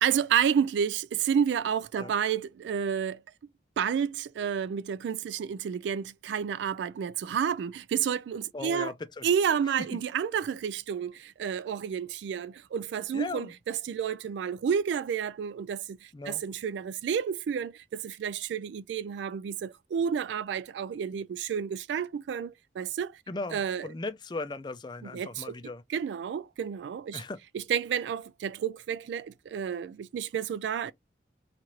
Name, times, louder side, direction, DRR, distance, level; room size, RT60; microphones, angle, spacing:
voice 1, 0.0-3.2 3.8-8.9 9.2-23.1 23.5-23.9 25.0-25.5 25.9-27.2 27.5-30.9, right 7 dB, 85° right, 0.3 m, -30 dB
voice 2, 8.5-9.2 9.9-10.0 13.1-13.5 16.1-16.4 23.3-25.8 27.1-27.4, left 3 dB, 25° left, 0.4 m, -37 dB
3.0 x 2.5 x 4.2 m
head